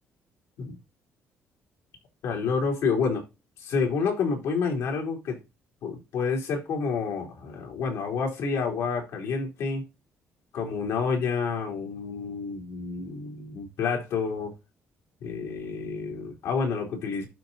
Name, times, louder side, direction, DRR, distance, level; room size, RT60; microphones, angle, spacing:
voice 1, 2.2-3.2 3.6-5.4 5.8-9.8 10.5-14.5 15.2-17.3, left 5 dB, 80° left, 3.4 m, -29 dB
12.0 x 4.0 x 4.1 m
cardioid pair, 155°, 5 cm